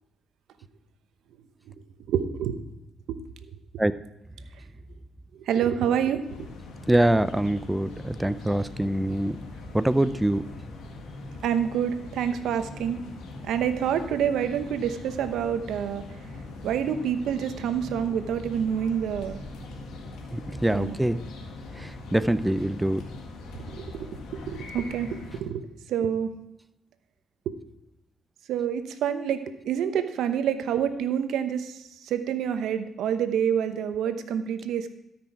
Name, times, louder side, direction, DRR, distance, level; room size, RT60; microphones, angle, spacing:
voice 1, 2.1-2.6 5.5-6.5 11.4-13.0 13.4-16.0 16.6-19.4 20.7-21.0 23.8-25.6 25.9-26.3 28.5-31.8 32.0-35.0, right 8 dB, 80° right, 10 dB, 0.9 m, -27 dB
sound 1, 6.2-25.4, left 2 dB, 80° left, 1.8 m, -41 dB
voice 2, 6.9-9.4 9.7-10.4 20.3-21.2 21.8-23.1, right 1 dB, 10° right, 14 dB, 0.5 m, -24 dB
13.0 x 6.1 x 4.6 m, 0.89 s
cardioid pair, 90°, 0 cm